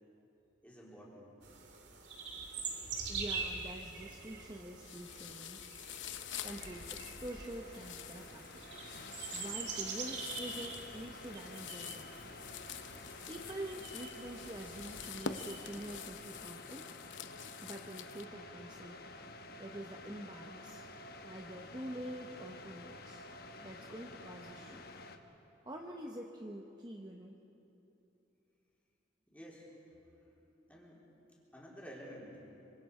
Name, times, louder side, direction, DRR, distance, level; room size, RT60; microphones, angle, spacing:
voice 1, 0.6-1.3 29.3-29.7 29.9-30.4 30.7-31.0 31.5-32.4, equal, 10° left, -5 dB, 3.9 m, -52 dB
sound 1, 1.4-16.1, right 4 dB, 65° right, 2.4 m, -45 dB
voice 2, 3.1-5.7 6.4-8.6 9.3-12.1 13.3-16.9 17.6-19.0 19.6-20.8 21.2-23.2 23.6-24.8 25.6-27.4, right 1 dB, 20° right, 1 dB, 1.0 m, -46 dB
sound 2, 3.9-4.4 4.8-18.3, left 8 dB, 85° left, 0.8 m, -48 dB
sound 3, 6.2-25.2, left 2 dB, 55° left, 1.1 m, -51 dB
25.5 x 25.0 x 4.9 m, 3.0 s
head